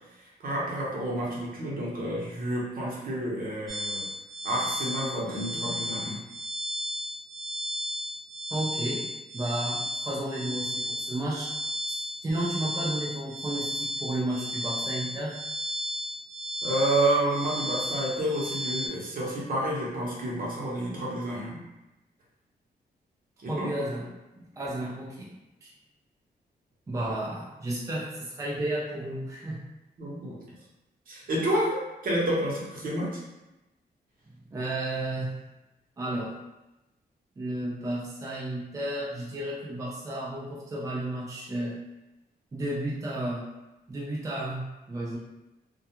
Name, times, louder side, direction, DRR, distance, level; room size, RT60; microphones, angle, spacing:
voice 1, 0.4-4.1 4.4-6.2 16.6-21.6 23.4-23.7 30.0-30.4 31.1-33.2, right 1 dB, 60° right, -5 dB, 0.8 m, -29 dB
sound 1, 3.7-18.9, equal, ahead, 0.9 m, -34 dB
voice 2, 8.5-9.0 9.3-11.5 12.2-15.3 23.5-24.1 24.4-25.3 25.6-25.7 26.9-29.6 34.5-35.3 36.0-36.3 37.4-41.8 42.5-43.5 43.9-45.2, right 1 dB, 20° right, -5 dB, 0.4 m, -32 dB
2.3 x 2.2 x 2.8 m, 0.98 s
wide cardioid pair, 130°, 17 cm